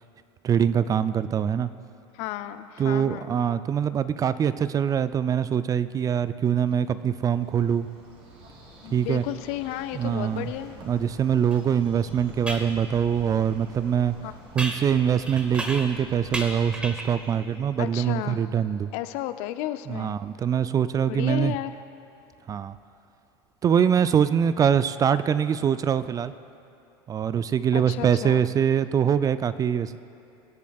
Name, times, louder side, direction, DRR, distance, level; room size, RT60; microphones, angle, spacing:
voice 1, 0.4-1.7 2.8-7.9 8.9-9.2 9.9-10.5 10.8-14.2 14.5-18.9 19.9-21.5 22.5-22.8 23.6-26.3 27.1-30.0, right 8 dB, 25° right, 14 dB, 0.3 m, -23 dB
voice 2, 2.1-3.4 8.8-10.8 14.2-14.4 17.8-18.4 18.9-20.1 21.1-21.7 27.7-28.4, left 14 dB, 60° left, 11 dB, 0.6 m, -33 dB
Bird, 6.7-18.1, right 1 dB, 50° right, 2.8 m, -48 dB
sound 1, 11.5-11.6 12.5-12.7 14.6-16.0 16.3-17.2, right 1 dB, 10° right, 1.1 m, -34 dB
23.0 x 8.2 x 2.4 m, 2.7 s
hypercardioid pair, 85°, 13 cm